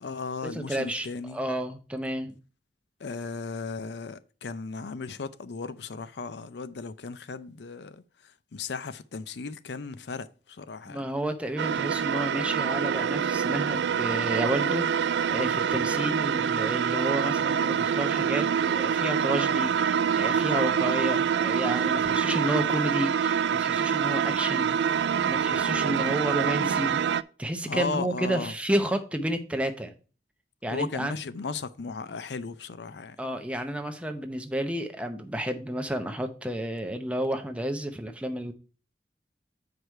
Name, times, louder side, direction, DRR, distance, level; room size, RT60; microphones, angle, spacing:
voice 1, 0.0-1.4 3.0-11.1 27.6-28.5 30.7-33.2, left 4 dB, 75° left, 0.5 m, -36 dB
voice 2, 0.5-2.4 10.9-24.8 25.3-29.9 30.6-31.1 33.2-38.5, right 1 dB, 5° right, 0.8 m, -31 dB
sound 1, 11.6-27.2, right 7 dB, 80° right, 0.3 m, -26 dB
8.0 x 4.8 x 4.5 m
head